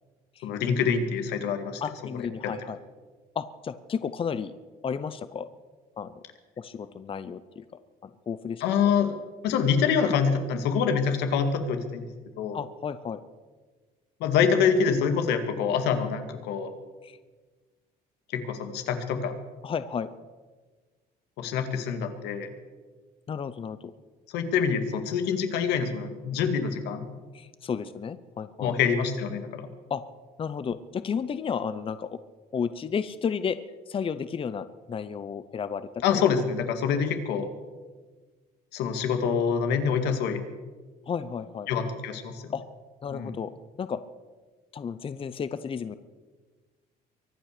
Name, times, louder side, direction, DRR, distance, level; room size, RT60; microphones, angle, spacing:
voice 1, 0.4-1.8 2.1-2.5 8.6-9.2 9.4-12.1 12.4-12.6 14.2-16.7 18.3-19.3 21.4-22.5 24.3-27.1 28.6-29.7 36.0-37.5 38.7-40.4 41.7-42.5 43.1-43.3, left 6 dB, 90° left, 7 dB, 2.1 m, -26 dB
voice 2, 1.8-2.8 3.3-4.5 4.8-5.5 6.0-6.1 6.6-7.6 8.0-8.9 12.5-13.2 17.0-17.2 19.6-20.1 23.3-23.9 27.3-28.7 29.9-30.0 30.4-32.2 32.5-33.6 33.9-36.2 41.1-41.7 42.5-42.6 43.0-43.5 43.8-44.0 44.7-46.0, left 6 dB, 30° left, 13 dB, 0.7 m, -32 dB
23.5 x 8.9 x 6.7 m, 1.4 s
cardioid pair, 110°, 17 cm